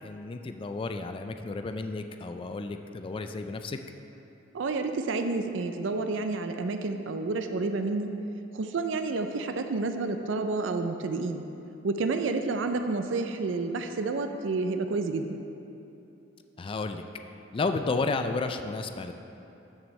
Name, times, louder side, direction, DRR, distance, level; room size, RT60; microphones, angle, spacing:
voice 1, 0.0-3.8 16.6-17.0 17.5-19.1, left 3 dB, 30° left, 7 dB, 0.3 m, -32 dB
voice 2, 4.5-8.2 8.5-11.5 11.8-15.4, right 3 dB, 80° right, 7 dB, 0.5 m, -30 dB
13.0 x 6.2 x 3.2 m, 2.9 s
head